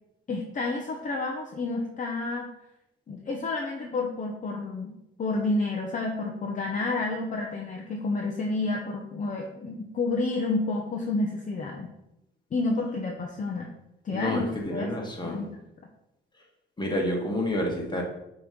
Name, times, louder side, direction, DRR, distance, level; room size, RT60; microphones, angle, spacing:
voice 1, 0.3-2.5 3.1-11.9 12.5-13.7 14.0-14.4 14.7-15.6, left 3 dB, 40° left, 1 dB, 0.8 m, -30 dB
voice 2, 14.1-15.4 16.8-18.0, left 1 dB, 20° left, 0 dB, 1.7 m, -29 dB
6.0 x 3.2 x 5.2 m, 0.87 s
cardioid pair, 90°, 20 cm